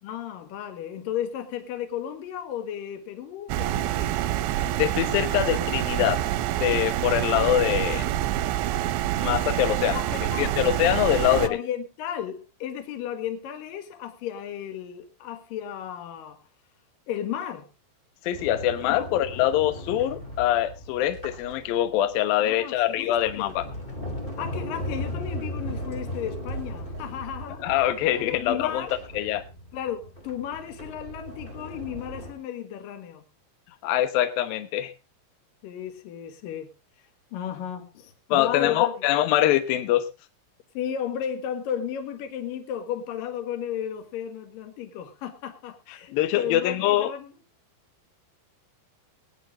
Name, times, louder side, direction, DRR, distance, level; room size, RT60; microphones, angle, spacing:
voice 1, 0.0-4.1 9.9-10.5 11.2-16.4 17.1-17.7 18.9-19.0 22.4-23.5 24.4-27.6 28.2-28.9 29.7-33.2 35.6-36.7 37.3-39.0 40.7-47.3, left 9 dB, 60° left, 2.5 m, -34 dB
sound 1, 3.5-11.5, right 13 dB, 80° right, 2.8 m, -27 dB
voice 2, 4.8-6.2 6.6-8.1 9.2-10.0 10.4-11.6 18.2-23.6 27.6-28.9 29.1-29.4 33.8-34.9 38.3-40.1 46.1-47.1, left 12 dB, 75° left, 2.1 m, -24 dB
Sliding door, 18.3-22.1 22.8-32.3, equal, 25° left, 1.1 m, -37 dB
20.5 x 10.0 x 3.0 m
omnidirectional pair, 5.9 m